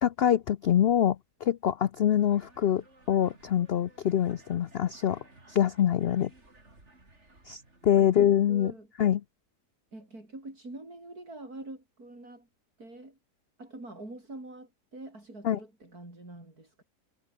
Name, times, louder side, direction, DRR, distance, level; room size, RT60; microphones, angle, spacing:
voice 1, 0.0-2.8 3.1-5.2 5.5-6.3 7.5-8.7 9.0-9.2 15.4-15.6, left 10 dB, 70° left, 0.5 m, -25 dB
sound 1, 2.2-8.3, right 2 dB, 45° right, 5.1 m, -57 dB
voice 2, 8.0-8.9 9.9-12.5 12.8-13.2 13.6-16.8, right 2 dB, 65° right, 8.1 m, -45 dB
omnidirectional pair, 1.7 m